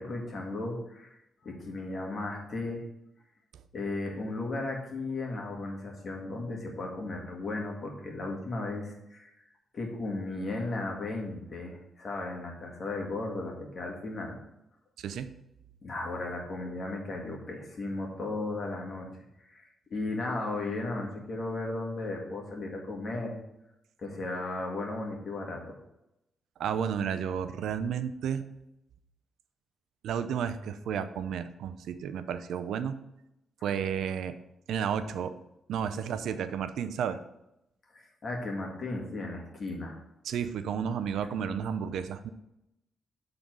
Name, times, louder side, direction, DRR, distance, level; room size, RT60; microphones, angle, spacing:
voice 1, 0.0-2.8 3.7-9.3 9.7-14.4 15.8-19.1 19.5-23.4 24.0-25.7 37.9-40.0, left 2 dB, 40° left, 0 dB, 1.7 m, -35 dB
voice 2, 15.0-15.3 26.6-28.4 30.0-33.0 33.6-34.3 34.7-35.3 35.7-37.2 40.2-42.3, right 7 dB, 85° right, 10 dB, 0.5 m, -32 dB
7.1 x 3.9 x 6.0 m, 0.87 s
cardioid pair, 140°, 0 cm